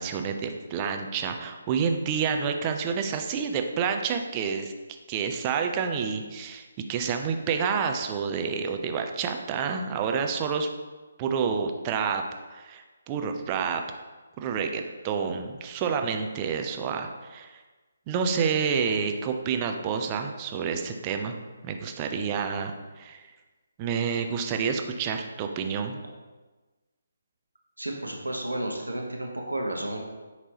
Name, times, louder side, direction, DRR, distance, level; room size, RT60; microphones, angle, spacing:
voice 1, 0.0-4.7 5.1-10.7 11.2-12.2 12.5-13.8 14.4-17.6 18.1-21.4 21.6-23.3 23.8-26.0, right 6 dB, 25° right, 5 dB, 0.4 m, -29 dB
voice 2, 27.8-30.0, right 1 dB, 90° right, 1 dB, 0.8 m, -32 dB
5.2 x 2.9 x 2.9 m, 1.3 s
figure-of-eight pair, 145°, 0 cm